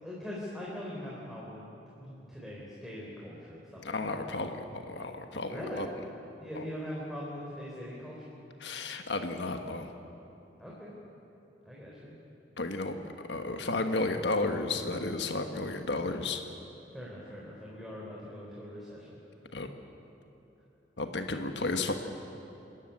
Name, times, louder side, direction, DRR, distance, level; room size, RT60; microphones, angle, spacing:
voice 1, 0.0-1.6 2.0-4.2 5.5-5.9 6.4-8.2 10.6-10.9 11.6-12.1 16.9-19.2, equal, ahead, -6 dB, 3.6 m, -41 dB
voice 2, 3.8-5.9 6.5-6.7 8.6-9.9 12.6-13.0 13.3-16.4 19.5-19.7 21.0-21.9, left 3 dB, 85° left, 6 dB, 1.4 m, -33 dB
26.0 x 14.0 x 10.0 m, 2.9 s
head